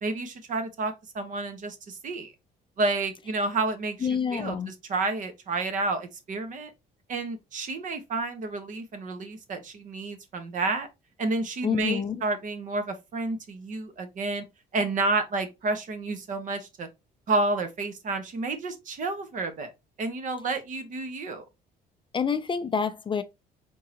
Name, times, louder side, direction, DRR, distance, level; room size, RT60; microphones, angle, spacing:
voice 1, 0.0-2.3 2.8-6.7 7.1-10.9 11.2-14.4 14.7-16.9 17.3-19.7 20.0-21.4, right 3 dB, 50° right, 1.2 m, -30 dB
voice 2, 4.0-4.7 11.6-12.2 22.1-23.2, left 6 dB, 30° left, 0.5 m, -27 dB
4.6 x 3.7 x 2.8 m
cardioid pair, 110°, 17 cm